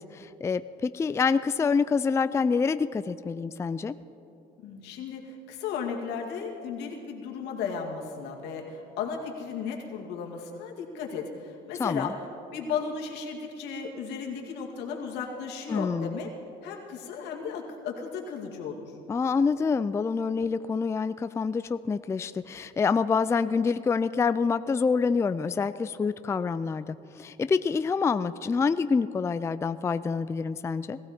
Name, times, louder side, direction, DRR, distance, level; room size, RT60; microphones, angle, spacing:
voice 1, 0.0-3.9 11.8-12.1 15.7-16.2 19.1-31.0, left 5 dB, 15° left, 13 dB, 0.3 m, -27 dB
voice 2, 4.6-12.1 12.5-16.3 16.6-18.9, left 6 dB, 90° left, 0 dB, 2.2 m, -35 dB
20.0 x 15.0 x 4.3 m, 2.8 s
cardioid pair, 110°, 17 cm